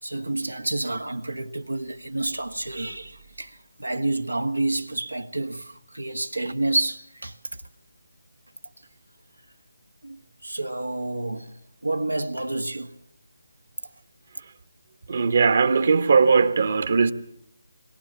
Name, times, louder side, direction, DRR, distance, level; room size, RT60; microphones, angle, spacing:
voice 1, 0.0-7.6 10.0-12.9 13.8-13.9, right 2 dB, 90° right, 1.5 m, -29 dB
voice 2, 15.1-17.1, right 5 dB, 50° right, 1.2 m, -19 dB
22.0 x 18.0 x 7.3 m
figure-of-eight pair, 155°, 0 cm